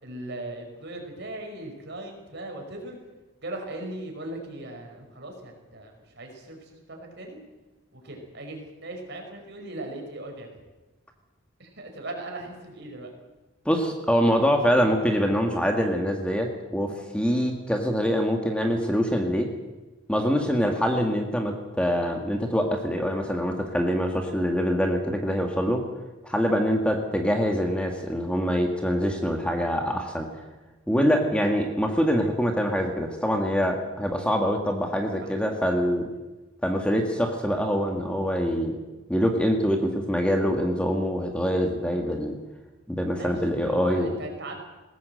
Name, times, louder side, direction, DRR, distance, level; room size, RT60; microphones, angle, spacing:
voice 1, 0.0-3.0 3.4-7.4 7.9-10.6 11.6-13.1 35.2-35.3 43.2-44.6, right 1 dB, 55° right, 2 dB, 5.2 m, -38 dB
voice 2, 13.7-19.5 20.1-25.8 26.2-30.3 30.9-36.1 36.6-38.8 39.1-42.4 42.9-44.1, equal, 5° left, 3 dB, 1.8 m, -24 dB
20.5 x 17.0 x 7.9 m, 1.1 s
head